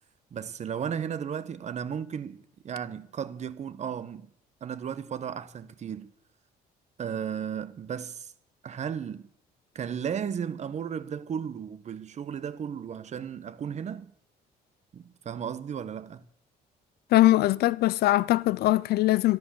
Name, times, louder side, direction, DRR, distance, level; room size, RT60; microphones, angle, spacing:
voice 1, 0.3-4.3 4.6-6.1 7.0-8.3 8.6-9.3 9.7-14.1 14.9-16.2, right 8 dB, 45° right, 1.0 m, -35 dB
voice 2, 17.1-19.4, left 16 dB, 70° left, 0.6 m, -21 dB
14.0 x 12.0 x 7.1 m
cardioid pair, 110°, 17 cm